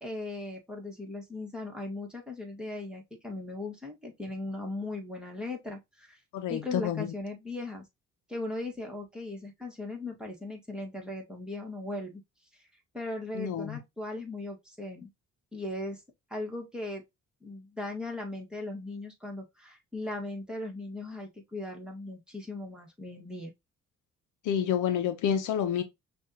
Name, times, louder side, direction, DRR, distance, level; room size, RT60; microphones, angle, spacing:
voice 1, 0.0-6.2 6.5-7.8 8.3-12.2 12.9-15.1 15.5-16.0 16.3-17.0 17.4-23.5, left 2 dB, 5° right, 1.7 m, -38 dB
voice 2, 6.3-7.1 13.3-13.8 24.4-25.8, left 9 dB, 80° left, 0.7 m, -29 dB
6.0 x 2.5 x 2.9 m
cardioid pair, 90°, 30 cm